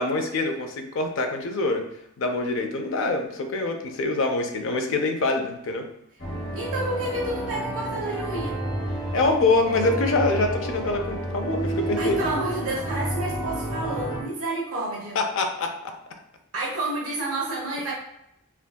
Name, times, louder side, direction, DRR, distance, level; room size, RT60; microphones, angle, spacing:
voice 1, 0.0-1.8 2.2-5.8 9.1-12.2 15.1-15.9, left 3 dB, 60° left, 4 dB, 0.4 m, -25 dB
sound 1, 6.2-14.2, right 1 dB, 40° left, 0.8 m, -30 dB
voice 2, 6.5-8.5 12.0-15.2 16.5-17.9, right 2 dB, 80° right, -4 dB, 1.1 m, -29 dB
3.4 x 2.6 x 2.2 m, 0.81 s
head